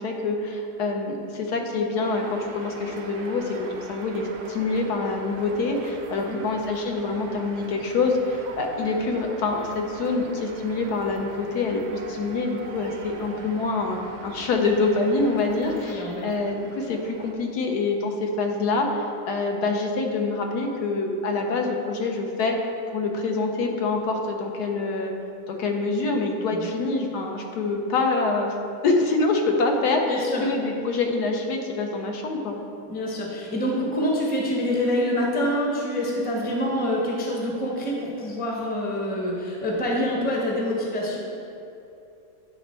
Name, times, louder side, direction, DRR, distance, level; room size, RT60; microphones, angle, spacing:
voice 1, 0.0-22.6 22.9-25.1 25.5-28.5 28.8-32.6, left 3 dB, 80° left, 2 dB, 1.3 m, -26 dB
sound 1, 2.0-17.3, right 4 dB, 65° right, 0.8 m, -42 dB
voice 2, 15.9-16.3 26.5-26.7 30.0-30.5 32.9-41.2, left 1 dB, 10° left, -3 dB, 0.5 m, -26 dB
9.2 x 3.4 x 4.3 m, 2.7 s
omnidirectional pair, 1.7 m